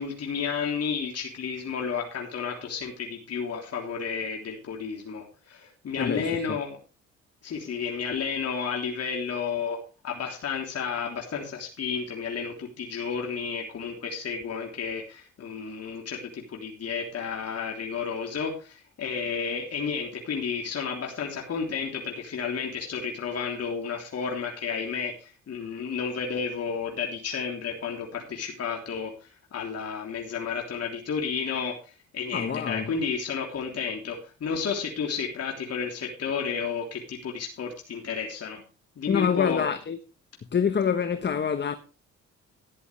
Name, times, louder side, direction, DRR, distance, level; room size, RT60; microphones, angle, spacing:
voice 1, 0.0-6.8 7.4-9.8 10.0-38.6 39.0-39.7, left 6 dB, 55° left, 3.4 m, -32 dB
voice 2, 6.0-6.4 32.3-32.9 39.1-40.0 40.5-41.7, left 7 dB, 35° left, 1.1 m, -26 dB
14.0 x 11.0 x 3.3 m
cardioid pair, 90°, 30 cm